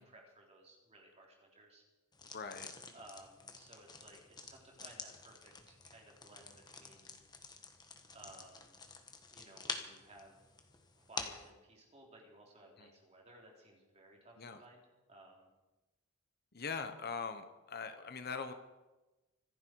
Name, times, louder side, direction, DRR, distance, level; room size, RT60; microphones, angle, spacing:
voice 1, 0.0-1.8 2.9-7.2 8.1-8.8 9.3-10.5 11.0-15.5, right 1 dB, 30° right, -1 dB, 3.7 m, -58 dB
sound 1, 2.1-11.5, left 4 dB, 20° left, 1.4 m, -48 dB
voice 2, 2.3-2.7 12.8-12.9 14.4-14.6 16.5-18.5, left 5 dB, 45° left, 8 dB, 1.0 m, -42 dB
25.5 x 10.5 x 4.7 m, 1.1 s
head